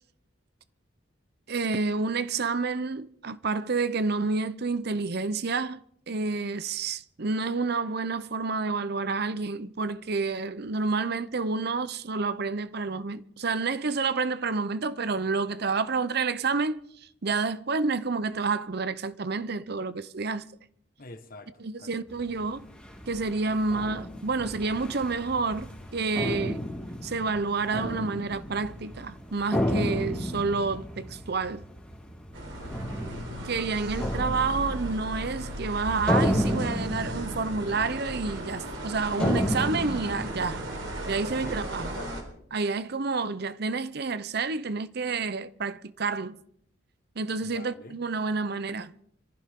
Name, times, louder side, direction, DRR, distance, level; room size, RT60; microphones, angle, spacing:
voice 1, 1.5-5.8 6.1-16.8 17.2-20.5 21.6-22.6 23.1-26.6 27.0-31.6 33.4-40.6 41.1-42.0 42.5-46.4 47.2-48.9, right 4 dB, 55° right, 0.7 m, -29 dB
voice 2, 21.0-21.5 21.8-22.1 32.6-33.3 41.4-42.2 47.4-48.0, left 1 dB, 50° left, 1.5 m, -46 dB
Staircase metal rumble, 22.1-42.0, equal, 5° left, 3.4 m, -33 dB
sound 1, 32.3-42.2, right 1 dB, 75° right, 4.0 m, -36 dB
26.0 x 15.0 x 3.7 m
head